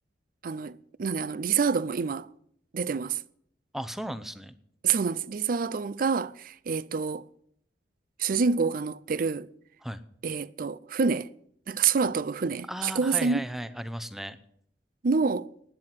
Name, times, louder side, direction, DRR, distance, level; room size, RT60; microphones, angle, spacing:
voice 1, 0.4-2.3 2.7-3.2 4.8-7.3 8.2-9.5 10.2-11.3 11.7-13.4 15.0-15.5, right 5 dB, 55° right, 0.5 m, -27 dB
voice 2, 3.7-4.5 9.8-10.0 12.7-14.4, equal, ahead, 0.7 m, -36 dB
12.0 x 9.7 x 7.5 m
head